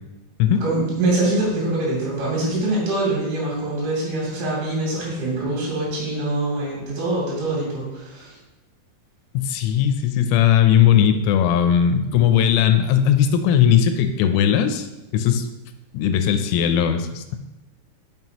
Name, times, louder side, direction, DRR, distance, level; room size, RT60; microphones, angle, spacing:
voice 1, 0.6-8.4, right 2 dB, 70° right, -6 dB, 5.2 m, -24 dB
voice 2, 9.3-14.9 15.1-15.5 15.9-17.4, left 9 dB, 85° left, 8 dB, 3.2 m, -18 dB
9.0 x 6.1 x 2.9 m, 1.0 s
omnidirectional pair, 5.7 m